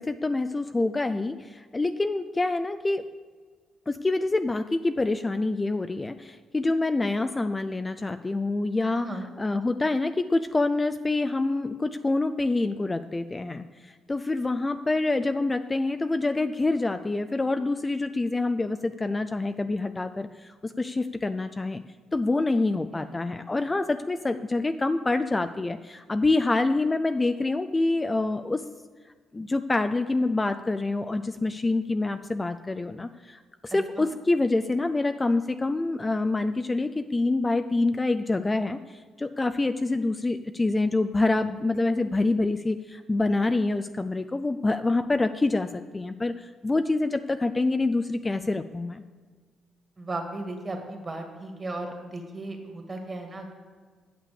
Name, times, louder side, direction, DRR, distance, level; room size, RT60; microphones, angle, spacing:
voice 1, 0.0-3.0 3.9-9.1 9.4-21.8 22.1-28.6 29.3-49.0, left 2 dB, 20° left, 9 dB, 0.4 m, -26 dB
voice 2, 8.9-9.3 22.9-23.1 34.0-34.1 50.0-53.5, right 2 dB, 30° right, 4 dB, 2.0 m, -36 dB
8.9 x 6.8 x 6.8 m, 1.5 s
cardioid pair, 90°, 0 cm